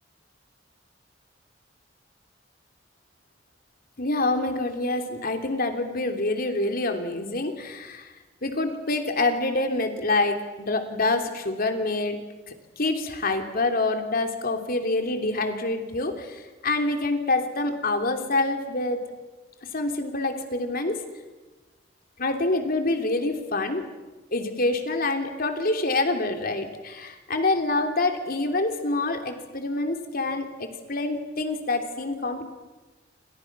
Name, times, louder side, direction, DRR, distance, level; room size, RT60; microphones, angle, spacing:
voice 1, 4.0-8.1 8.4-12.2 12.5-19.0 19.7-21.0 22.2-23.9 24.3-32.4, left 2 dB, 50° left, 5 dB, 3.2 m, -26 dB
29.0 x 26.5 x 6.2 m, 1.2 s
head